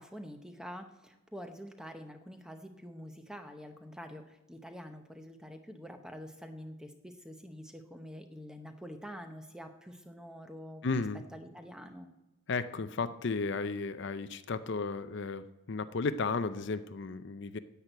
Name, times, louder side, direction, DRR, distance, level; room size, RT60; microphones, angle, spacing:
voice 1, 0.0-11.0 11.3-12.1, equal, 5° right, 6 dB, 0.8 m, -46 dB
voice 2, 10.8-11.2 12.5-17.6, left 4 dB, 50° left, 11 dB, 0.5 m, -34 dB
10.5 x 8.3 x 7.9 m, 1.0 s
head